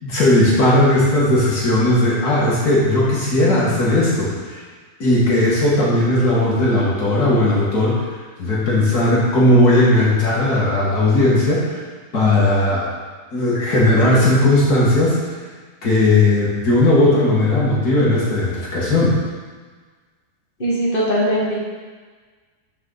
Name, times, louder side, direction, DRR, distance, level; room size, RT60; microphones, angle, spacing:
voice 1, 0.0-4.6 5.0-8.0 8.4-11.7 12.1-12.8 13.3-15.2 15.8-19.2, left 1 dB, 70° left, -6 dB, 2.5 m, -16 dB
voice 2, 20.6-21.6, equal, 35° left, -7 dB, 2.1 m, -20 dB
12.0 x 5.5 x 4.0 m, 1.5 s
omnidirectional pair, 1.7 m